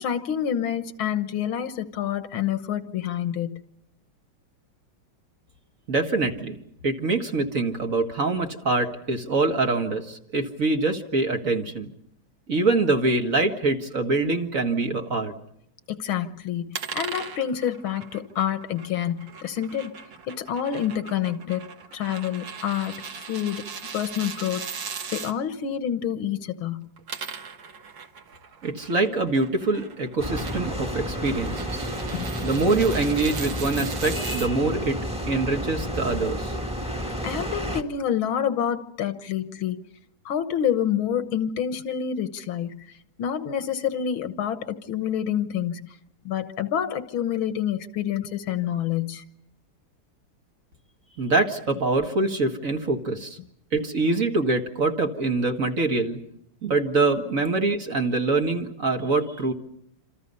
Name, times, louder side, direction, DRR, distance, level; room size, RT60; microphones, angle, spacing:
voice 1, 0.0-3.6 15.9-19.9 20.2-21.6 21.9-23.0 23.3-23.6 23.9-26.9 32.1-32.3 37.2-39.8 40.3-42.9 43.2-46.0 46.3-49.2, left 9 dB, 85° left, 11 dB, 2.0 m, -28 dB
voice 2, 5.9-6.6 6.8-11.9 12.5-15.3 28.6-31.9 32.4-35.0 35.3-36.6 51.2-53.4 53.7-56.2 56.6-59.5, right 3 dB, 40° right, 4 dB, 2.1 m, -24 dB
sound 1, 16.7-25.3 26.8-34.5, right 6 dB, 65° right, 2.2 m, -39 dB
sound 2, 30.2-37.8, equal, 5° right, 1.7 m, -31 dB
27.5 x 27.5 x 5.5 m, 0.74 s
omnidirectional pair, 2.2 m